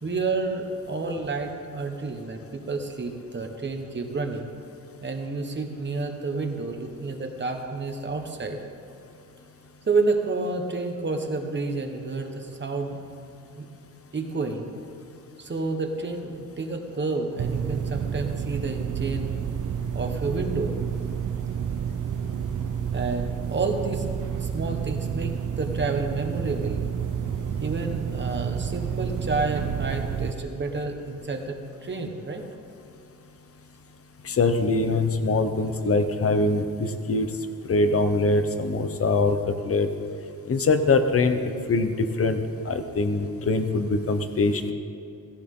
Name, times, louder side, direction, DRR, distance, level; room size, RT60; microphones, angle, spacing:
voice 1, 0.0-4.5 5.0-8.6 9.9-13.0 13.6-13.7 14.1-14.7 15.4-19.4 19.9-20.7 22.9-24.0 24.3-26.8 27.6-32.4, right 3 dB, 35° right, 4 dB, 1.2 m, -30 dB
sound 1, 17.4-30.3, right 8 dB, 65° right, 0.6 m, -30 dB
voice 2, 34.2-37.3 37.7-39.9 40.5-41.4 41.7-41.9 42.2-42.4 42.6-44.7, left 3 dB, 45° left, 8 dB, 0.9 m, -23 dB
17.0 x 14.5 x 3.8 m, 2.5 s
wide cardioid pair, 170°, 33 cm